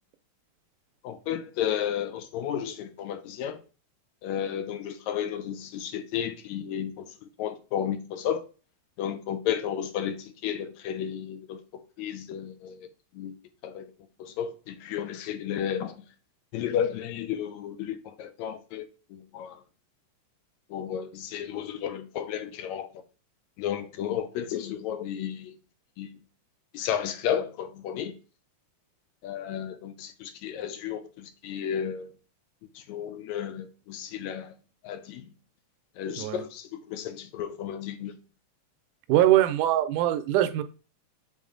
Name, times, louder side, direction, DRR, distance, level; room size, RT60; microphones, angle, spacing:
voice 1, 1.0-3.6 4.2-7.1 7.4-8.4 9.0-11.6 12.0-12.9 13.2-13.4 13.6-13.9 14.2-16.0 16.5-18.9 19.1-19.6 20.7-22.9 23.6-25.5 26.0-26.1 26.7-28.1 29.2-32.1 32.9-34.5 34.8-35.3 36.0-38.1, left 9 dB, 75° left, 1.9 m, -32 dB
voice 2, 39.1-40.6, right 13 dB, 85° right, 2.1 m, -22 dB
7.1 x 4.0 x 3.7 m
omnidirectional pair, 3.5 m